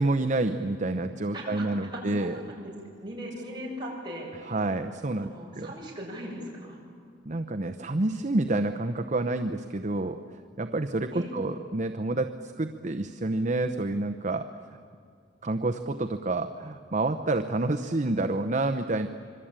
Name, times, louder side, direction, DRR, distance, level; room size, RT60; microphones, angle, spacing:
voice 1, 0.0-2.4 4.5-5.3 5.5-5.7 7.3-10.2 10.6-14.5 15.4-19.1, right 2 dB, 40° right, 8 dB, 0.8 m, -28 dB
voice 2, 1.3-2.7 3.0-4.6 5.2-6.8 11.1-11.3, equal, 25° right, -3 dB, 7.4 m, -39 dB
26.5 x 23.5 x 8.9 m, 2.2 s
head